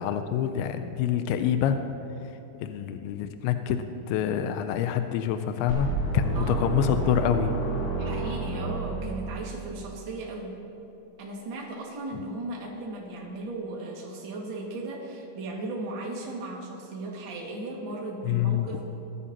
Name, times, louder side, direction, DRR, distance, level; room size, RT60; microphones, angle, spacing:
voice 1, 0.0-1.8 2.6-7.5 12.1-12.2 18.3-18.7, left 9 dB, 85° left, 8 dB, 2.8 m, -26 dB
sound 1, 5.7-9.7, right 3 dB, 65° left, 5.3 m, -30 dB
voice 2, 6.3-6.7 8.0-10.5 11.2-18.8, right 2 dB, 50° right, -3 dB, 1.4 m, -36 dB
20.0 x 14.0 x 2.9 m, 2.9 s
omnidirectional pair, 5.4 m